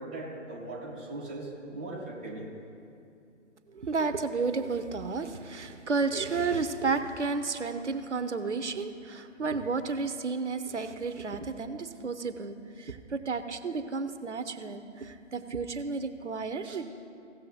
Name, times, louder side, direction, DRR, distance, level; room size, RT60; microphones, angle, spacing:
voice 1, 0.0-2.5 16.6-16.8, right 2 dB, 10° right, -8 dB, 0.5 m, -39 dB
voice 2, 3.7-16.8, right 4 dB, 70° right, 9 dB, 0.9 m, -32 dB
17.0 x 6.8 x 4.0 m, 2.5 s
figure-of-eight pair, 140°, 37 cm